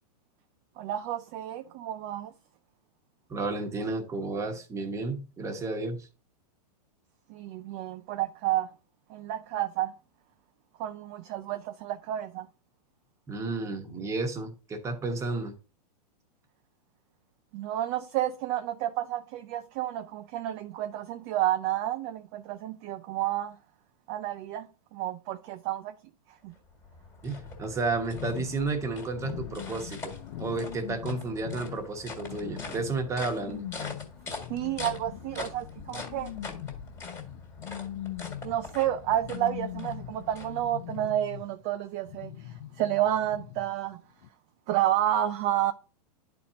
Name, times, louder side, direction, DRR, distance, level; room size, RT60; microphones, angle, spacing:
voice 1, 0.8-2.3 7.3-8.8 9.1-9.9 10.8-12.5 17.5-23.6 24.1-26.0 26.3-26.5 34.5-36.3 38.4-44.0 44.7-45.7, right 12 dB, 30° right, 0.4 m, -30 dB
voice 2, 3.3-6.1 13.3-15.5 27.2-33.6, right 3 dB, 15° right, 1.1 m, -32 dB
sound 1, 26.5-41.0, left 3 dB, 15° left, 1.7 m, -43 dB
sound 2, 28.1-41.7 42.1-43.9 44.2-44.3, left 13 dB, 50° left, 0.5 m, -41 dB
11.0 x 4.3 x 2.7 m
hypercardioid pair, 140°, 21 cm